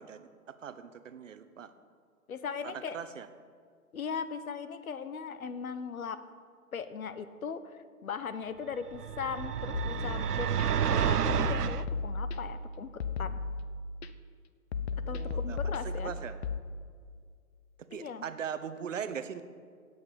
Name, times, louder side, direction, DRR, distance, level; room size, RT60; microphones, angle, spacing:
voice 1, 0.0-1.7 2.6-3.3 15.0-16.4 17.9-19.4, right 7 dB, 55° right, 11 dB, 0.9 m, -40 dB
voice 2, 2.3-3.0 3.9-6.2 6.7-7.6 8.0-12.9 13.2-13.4 15.1-16.1 17.9-18.2, left 6 dB, 65° left, 12 dB, 1.0 m, -38 dB
sound 1, 8.9-11.8, right 8 dB, 85° right, 0.6 m, -30 dB
sound 2, 9.7-10.6 11.3-12.6 13.0-14.1 14.7-16.6, left 4 dB, 45° left, 0.7 m, -35 dB
16.5 x 8.2 x 5.2 m, 2.1 s
figure-of-eight pair, 135°, 46 cm